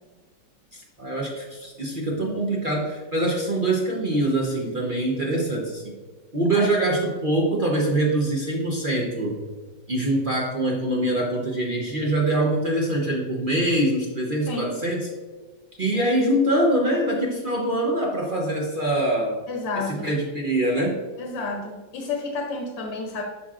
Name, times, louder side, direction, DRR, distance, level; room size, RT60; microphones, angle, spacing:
voice 1, 0.7-5.9 6.3-9.4 9.9-15.1 15.8-19.3 19.9-21.0, right 1 dB, 50° right, -2 dB, 0.6 m, -24 dB
voice 2, 14.4-14.8 15.9-16.1 19.5-20.1 21.2-23.2, left 3 dB, 80° left, 2 dB, 1.5 m, -30 dB
11.0 x 4.5 x 2.4 m, 1.4 s
omnidirectional pair, 1.9 m